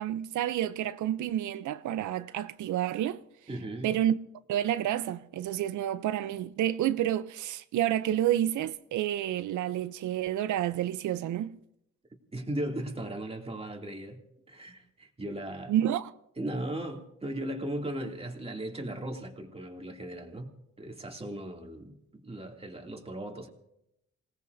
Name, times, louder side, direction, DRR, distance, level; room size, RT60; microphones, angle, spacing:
voice 1, 0.0-3.2 3.8-4.2 4.5-11.5 15.7-16.1, right 12 dB, 75° right, 0.7 m, -29 dB
voice 2, 3.5-3.9 12.3-14.2 14.5-15.7 16.4-20.5 20.8-23.5, right 1 dB, 20° right, 2.7 m, -37 dB
27.5 x 18.0 x 2.7 m
cardioid pair, 90°, 30 cm